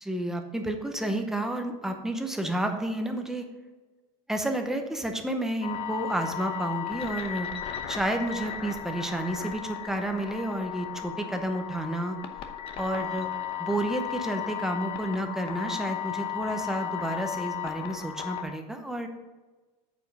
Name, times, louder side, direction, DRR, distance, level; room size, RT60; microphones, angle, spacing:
voice 1, 0.1-3.5 4.3-7.5 7.9-12.2 12.8-13.3 13.6-19.1, right 1 dB, 5° right, 4 dB, 0.8 m, -30 dB
sound 1, 5.6-18.4, left 10 dB, 35° left, 0.8 m, -35 dB
8.9 x 5.2 x 4.8 m, 1.2 s
cardioid pair, 155°, 16 cm